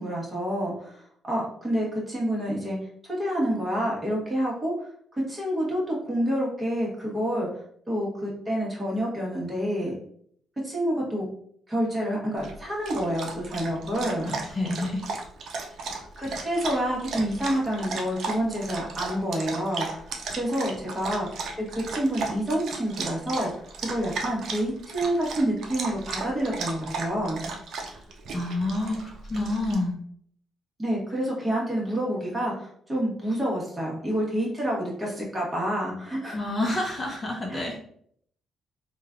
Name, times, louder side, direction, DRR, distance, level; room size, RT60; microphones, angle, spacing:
voice 1, 0.0-2.8 3.1-7.5 7.9-10.0 10.6-11.3 11.7-14.3 15.9-20.1 20.3-21.3 21.7-27.5 30.8-36.4 37.5-37.7, equal, 20° right, -4 dB, 1.2 m, -28 dB
Dog, 12.4-29.7, right 4 dB, 65° right, 0.5 m, -36 dB
voice 2, 13.8-15.0 27.9-30.0 36.3-37.8, left 2 dB, 35° left, -1 dB, 0.7 m, -29 dB
3.1 x 2.3 x 2.4 m, 0.64 s
cardioid pair, 90°, 0 cm